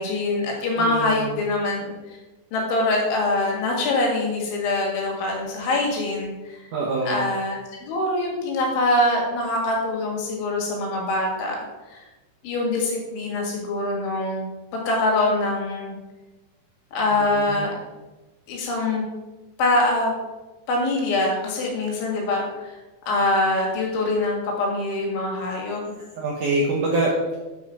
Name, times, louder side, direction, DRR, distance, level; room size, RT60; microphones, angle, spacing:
voice 1, 0.0-2.2 2.5-6.7 7.1-11.6 11.9-12.1 12.4-14.5 14.7-16.0 16.9-17.7 18.5-19.0 19.6-20.1 20.7-22.7 23.1-25.8, left 2 dB, 90° left, -1 dB, 4.5 m, -24 dB
voice 2, 0.8-1.3 6.7-7.2 17.1-17.7 26.1-27.1, right 2 dB, 75° right, -3 dB, 1.9 m, -25 dB
9.2 x 5.0 x 5.7 m, 1.1 s
omnidirectional pair, 5.3 m